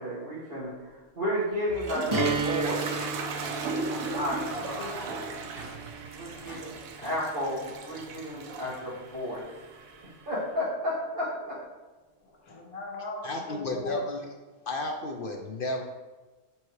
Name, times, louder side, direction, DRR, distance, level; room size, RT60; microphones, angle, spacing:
voice 1, 0.0-2.9 4.1-5.2 6.1-9.4 10.0-11.6, equal, 35° right, -12 dB, 1.7 m, -33 dB
Toilet flush, 1.4-10.3, right 4 dB, 75° right, 1.1 m, -37 dB
sound 1, 2.1-8.1, right 3 dB, 20° right, 1.7 m, -35 dB
Tools, 2.4-2.6 2.9-4.7 5.0-5.9 6.5-7.3, equal, 35° left, 2.3 m, -47 dB
voice 2, 4.5-5.4 6.2-6.4 12.2-14.0, left 1 dB, 85° left, 0 dB, 1.6 m, -39 dB
voice 3, 13.2-14.2 14.7-15.8, left 2 dB, 70° left, 3 dB, 0.5 m, -32 dB
7.3 x 4.7 x 3.1 m, 1.2 s
omnidirectional pair, 1.5 m